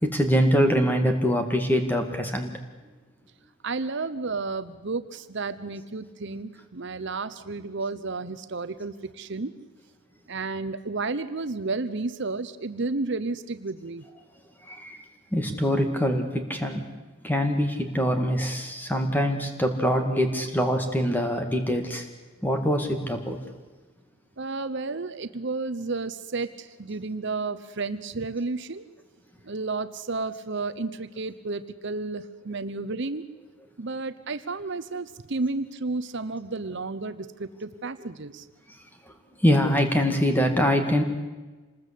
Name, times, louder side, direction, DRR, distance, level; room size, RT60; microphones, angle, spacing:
voice 1, 0.0-2.5 14.7-15.0 15.3-16.8 17.2-22.0 22.4-23.4 39.4-41.0, equal, 10° left, 5 dB, 2.2 m, -24 dB
voice 2, 3.6-9.5 10.3-14.0 24.4-28.8 29.4-33.2 33.8-38.4, right 3 dB, 55° right, 11 dB, 0.8 m, -32 dB
27.0 x 20.0 x 8.4 m, 1.2 s
head